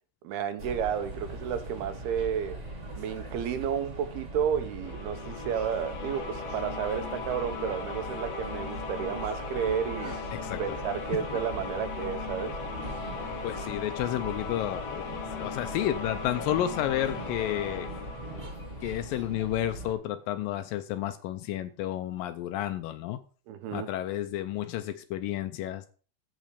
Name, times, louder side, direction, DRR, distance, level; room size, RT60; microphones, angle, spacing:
voice 1, 0.2-2.6 3.0-10.2 10.6-12.6 23.5-23.9, right 8 dB, 80° right, 2.9 m, -32 dB
sound 1, 0.6-19.9, right 1 dB, 25° right, 1.8 m, -41 dB
sound 2, 4.8-19.5, left 5 dB, 65° left, 1.8 m, -38 dB
voice 2, 10.3-10.8 13.4-15.0 15.4-17.9 18.8-23.2 23.7-25.9, left 12 dB, 80° left, 2.1 m, -31 dB
8.5 x 6.3 x 6.7 m
omnidirectional pair, 4.5 m